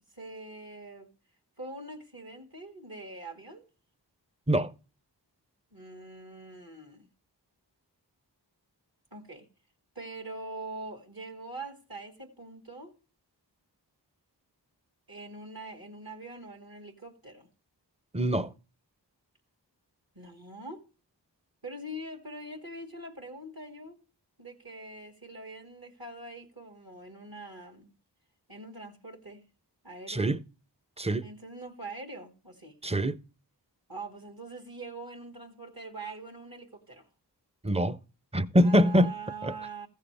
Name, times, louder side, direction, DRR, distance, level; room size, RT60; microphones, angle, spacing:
voice 1, 0.1-1.1 1.6-3.6 5.7-7.1 9.1-9.5 10.0-12.9 15.1-17.5 20.2-20.9 21.6-24.0 24.4-27.9 28.5-29.5 29.8-30.3 31.2-32.8 33.9-37.1 38.6-39.9, right 2 dB, 55° right, 1.9 m, -43 dB
voice 2, 18.1-18.5 30.1-30.4 31.0-31.3 32.8-33.2 37.6-38.0 38.3-39.1 39.4-39.5, equal, 15° right, 0.6 m, -24 dB
15.5 x 6.5 x 3.4 m
wide cardioid pair, 40°, 43 cm